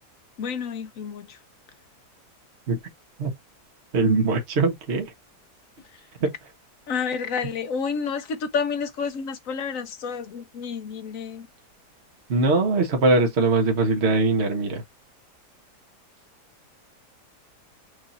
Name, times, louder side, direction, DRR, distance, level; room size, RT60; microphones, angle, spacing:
voice 1, 0.4-1.4 6.9-11.5, left 6 dB, 55° left, 1.2 m, -30 dB
voice 2, 3.9-5.1 6.2-6.3 12.3-14.8, right 3 dB, 45° right, 1.3 m, -21 dB
6.3 x 2.7 x 2.7 m
omnidirectional pair, 1.8 m